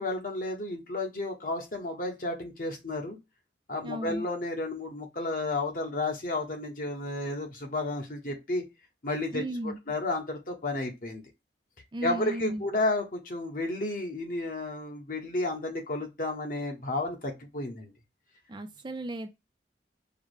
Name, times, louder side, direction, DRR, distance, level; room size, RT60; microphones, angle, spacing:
voice 1, 0.0-3.2 3.7-8.6 9.0-11.2 12.0-17.9, left 2 dB, 50° left, 1.2 m, -32 dB
voice 2, 3.8-4.2 9.3-9.8 11.9-12.6 18.5-19.3, right 1 dB, 25° right, 0.4 m, -35 dB
4.7 x 2.2 x 4.7 m
head